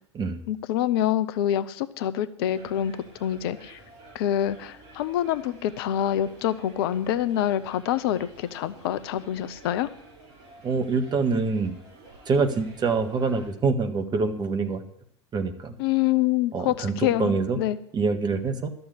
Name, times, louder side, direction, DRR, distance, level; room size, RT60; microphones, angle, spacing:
voice 1, 0.5-3.8 4.1-9.9 15.8-17.8, left 11 dB, 60° left, 15 dB, 0.7 m, -26 dB
sound 1, 2.5-13.5, right 2 dB, 55° right, 4.5 m, -51 dB
voice 2, 10.6-11.8 12.2-14.8 15.3-15.7 16.5-17.6 17.9-18.7, right 4 dB, 30° right, 7 dB, 1.6 m, -25 dB
12.5 x 7.0 x 8.3 m, 0.70 s
figure-of-eight pair, 75°, 14 cm